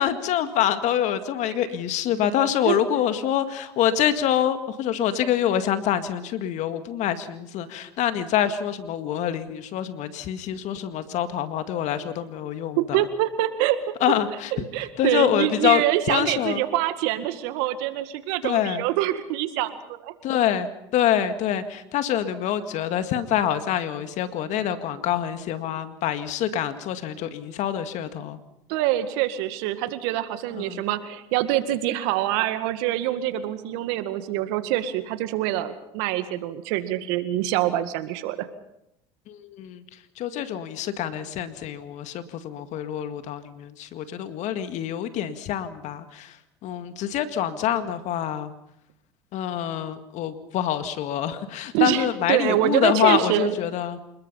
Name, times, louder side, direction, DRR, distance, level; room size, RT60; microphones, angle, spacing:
voice 1, 0.0-13.0 14.0-14.5 15.0-16.6 18.4-18.8 20.2-28.4 30.6-30.8 39.3-39.8 40.2-46.3 46.6-48.5 49.3-54.0, left 10 dB, 60° left, 10 dB, 2.0 m, -26 dB
voice 2, 12.8-13.8 14.5-20.1 28.7-38.5 51.7-53.6, right 13 dB, 75° right, 11 dB, 1.9 m, -25 dB
27.5 x 20.5 x 5.7 m, 0.80 s
hypercardioid pair, 80°, 14 cm